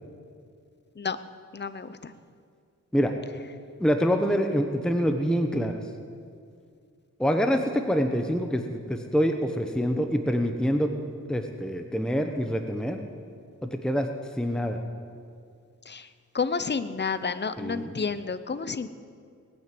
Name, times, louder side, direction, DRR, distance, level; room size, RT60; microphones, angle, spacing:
voice 1, 1.5-2.1 15.9-16.1 16.3-18.9, left 5 dB, 30° left, 13 dB, 0.7 m, -30 dB
voice 2, 3.8-5.7 7.2-10.9 11.3-13.0 13.6-14.1 14.4-14.8 17.6-18.0, equal, ahead, 5 dB, 1.0 m, -26 dB
19.5 x 9.3 x 7.7 m, 2.2 s
wide cardioid pair, 70°, 33 cm